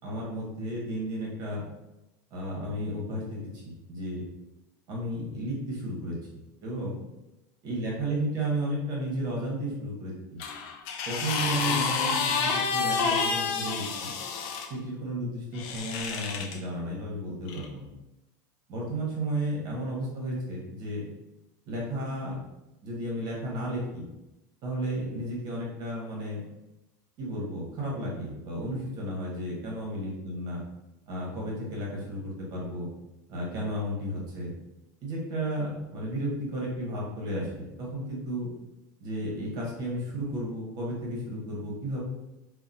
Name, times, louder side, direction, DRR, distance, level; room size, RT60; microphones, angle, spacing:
voice 1, 0.0-1.6 2.3-3.4 3.6-4.2 4.9-6.2 6.6-7.0 7.6-10.4 11.0-14.1 14.7-17.9 18.7-21.0 21.7-22.4 22.8-24.1 24.6-26.4 27.2-30.6 31.1-32.9 33.3-34.5 35.0-38.5 39.0-42.0, right 1 dB, 45° right, -4 dB, 1.0 m, -33 dB
sound 1, 10.4-14.7 15.5-16.6 17.5-17.7, left 5 dB, 55° left, 0.3 m, -29 dB
2.8 x 2.1 x 2.5 m, 0.95 s
supercardioid pair, 140°, 10 cm